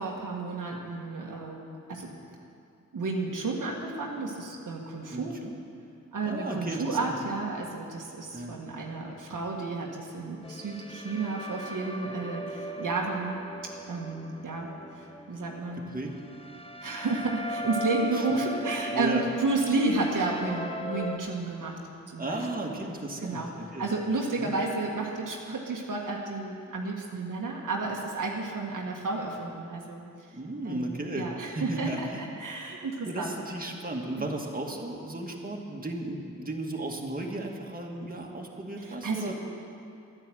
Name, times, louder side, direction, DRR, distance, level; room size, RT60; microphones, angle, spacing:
voice 1, 0.0-1.6 1.9-2.1 2.9-5.4 6.1-13.4 13.9-14.7 15.0-15.9 16.8-21.8 22.1-22.7 23.2-30.0 30.6-33.3 34.2-34.3 38.8-39.3, right 3 dB, 75° right, -1 dB, 1.7 m, -32 dB
voice 2, 5.1-5.6 6.2-7.2 8.3-8.6 15.8-16.1 18.1-18.4 18.9-19.2 22.2-23.9 24.4-24.5 30.3-31.3 31.5-32.2 33.1-39.3, right 2 dB, 25° right, 0 dB, 2.0 m, -35 dB
sound 1, 10.4-21.2, left 1 dB, 15° left, 0.9 m, -38 dB
10.5 x 10.5 x 7.8 m, 2.6 s
cardioid pair, 45°, 33 cm